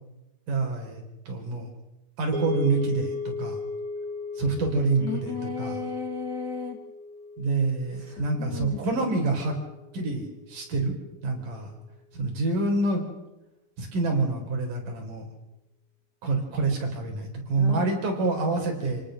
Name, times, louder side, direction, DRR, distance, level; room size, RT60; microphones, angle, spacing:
voice 1, 0.5-1.7 2.2-3.6 4.4-5.8 7.4-9.5 9.9-10.9 11.2-11.7 12.1-13.0 13.8-15.2 16.2-19.0, right 3 dB, 60° right, 2 dB, 5.6 m, -27 dB
sound 1, 2.3-10.6, left 3 dB, 75° right, 8.5 m, -37 dB
voice 2, 5.0-6.8 8.0-9.1 17.6-17.9, left 6 dB, 50° left, 5 dB, 1.3 m, -34 dB
28.0 x 19.0 x 6.6 m, 0.98 s
omnidirectional pair, 4.2 m